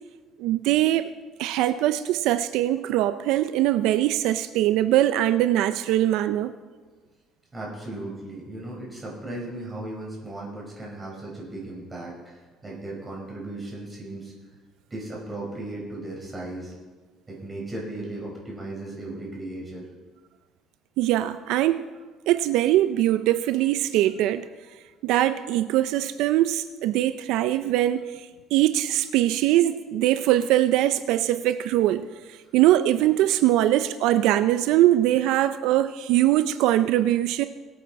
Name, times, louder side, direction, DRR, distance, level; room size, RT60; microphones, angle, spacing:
voice 1, 0.4-1.1 1.4-6.5 21.0-21.8 22.3-24.5 25.0-37.4, right 13 dB, 80° right, 12 dB, 0.5 m, -22 dB
voice 2, 7.5-14.3 14.9-16.7 17.3-19.8, right 2 dB, 15° right, -3 dB, 4.5 m, -36 dB
22.0 x 8.5 x 4.2 m, 1.4 s
cardioid pair, 150°, 0 cm